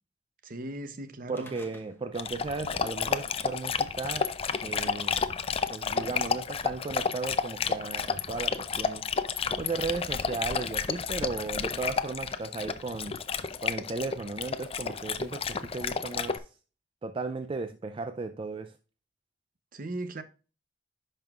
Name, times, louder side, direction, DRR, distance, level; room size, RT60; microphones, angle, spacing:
voice 1, 0.4-1.5 19.7-20.2, right 1 dB, 50° right, 0.7 m, -37 dB
sound 1, 1.3-2.3 2.6-2.7 3.7-3.8 4.7-4.8 5.4-6.8 7.6-7.7, left 1 dB, 15° left, 0.9 m, -51 dB
voice 2, 1.3-4.3 4.6-5.2 5.7-9.1 9.6-13.2 13.6-16.5 17.0-18.7, right 3 dB, 30° right, 0.3 m, -35 dB
Dog, 2.2-16.4, left 5 dB, 35° left, 0.4 m, -31 dB
10.5 x 5.4 x 2.4 m
head